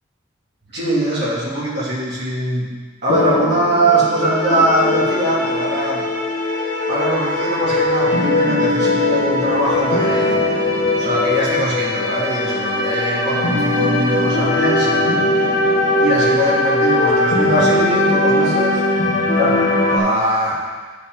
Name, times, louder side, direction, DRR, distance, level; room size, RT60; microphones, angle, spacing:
voice 1, 0.7-6.1 6.9-10.4 11.0-15.6 16.0-18.8 19.3-20.6, right 1 dB, 60° right, -7 dB, 2.8 m, -21 dB
sound 1, 3.1-20.0, left 2 dB, 90° left, 1.7 m, -19 dB
9.7 x 6.6 x 3.9 m, 1.4 s
head